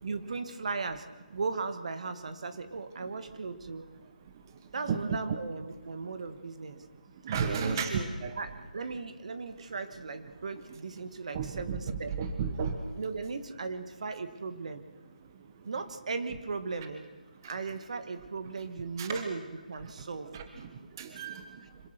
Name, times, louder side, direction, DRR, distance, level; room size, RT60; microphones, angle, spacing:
voice 1, 0.0-3.9 4.7-6.8 7.5-8.1 8.4-12.2 13.0-14.9 15.6-17.1 17.4-20.4, right 4 dB, 50° right, 10 dB, 1.8 m, -37 dB
voice 2, 7.2-8.4 11.3-11.8 12.2-12.7 19.0-19.2 20.3-20.4 21.0-21.5, right 6 dB, 25° right, 7 dB, 1.4 m, -32 dB
26.0 x 17.5 x 6.0 m, 1.4 s
figure-of-eight pair, 160°, 5 cm